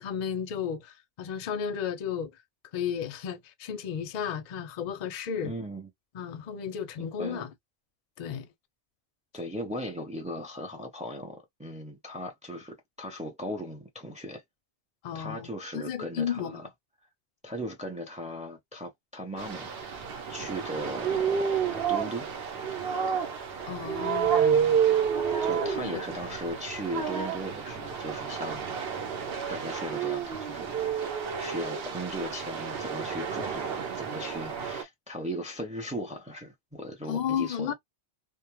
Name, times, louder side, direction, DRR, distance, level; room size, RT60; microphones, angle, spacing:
voice 1, 0.0-2.3 2.7-5.5 6.1-7.5 8.2-8.5 15.0-15.5 15.7-16.6 23.6-24.8 25.8-26.0 37.1-37.7, left 8 dB, 55° left, 0.5 m, -33 dB
voice 2, 5.4-5.9 7.0-7.4 9.3-14.4 15.1-16.7 17.4-19.8 20.3-22.3 25.4-28.8 29.5-37.7, equal, 10° right, 0.5 m, -38 dB
sound 1, 19.4-34.8, right 7 dB, 70° right, 0.9 m, -30 dB
2.3 x 2.1 x 2.9 m
omnidirectional pair, 1.1 m